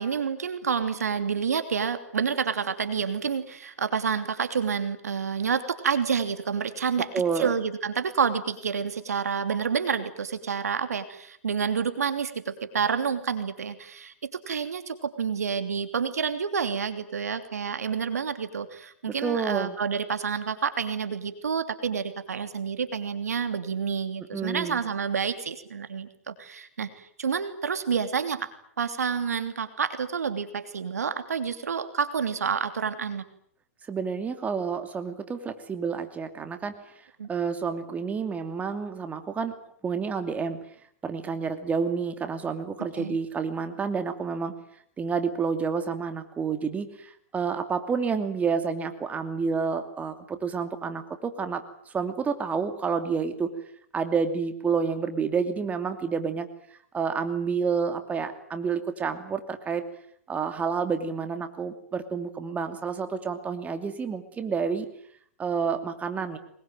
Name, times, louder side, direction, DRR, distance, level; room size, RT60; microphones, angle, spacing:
voice 1, 0.0-7.1 7.4-28.5 28.8-33.2 37.2-37.3 43.0-43.2, right 6 dB, 85° right, 9 dB, 3.0 m, -29 dB
voice 2, 7.1-7.5 19.1-19.8 24.3-24.8 33.9-36.7 37.3-39.6 39.8-40.6 41.0-44.6 45.0-53.5 53.9-56.5 56.9-59.8 60.3-64.9 65.4-66.4, right 5 dB, 15° right, 8 dB, 2.7 m, -29 dB
23.0 x 21.5 x 9.2 m, 0.67 s
hypercardioid pair, 120°, 8 cm